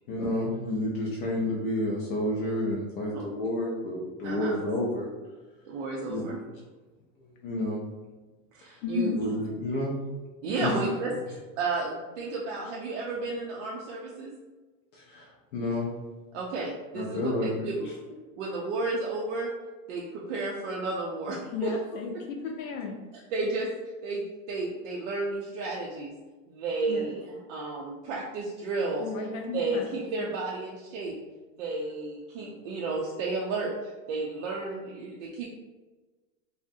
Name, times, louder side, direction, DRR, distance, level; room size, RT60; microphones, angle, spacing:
voice 1, 0.1-5.1 6.1-6.3 7.2-7.8 8.7-8.8 9.2-10.0 10.6-10.8 14.9-15.9 16.9-17.9 32.3-32.5, left 1 dB, 45° left, -4 dB, 0.4 m, -30 dB
voice 2, 5.6-6.4 8.5-9.1 10.4-11.1 11.6-14.3 16.3-17.3 17.6-17.9 18.4-19.6 19.9-21.7 23.3-23.7 24.0-26.1 26.5-29.1 29.5-31.2 31.6-35.5, right 3 dB, 65° right, -3 dB, 0.5 m, -32 dB
voice 3, 8.8-9.2 10.6-10.9 21.5-23.0 26.9-27.1 29.0-29.9 30.2-30.3, left 4 dB, 90° left, 1 dB, 0.6 m, -33 dB
2.6 x 2.1 x 2.5 m, 1.2 s
supercardioid pair, 160°, 40 cm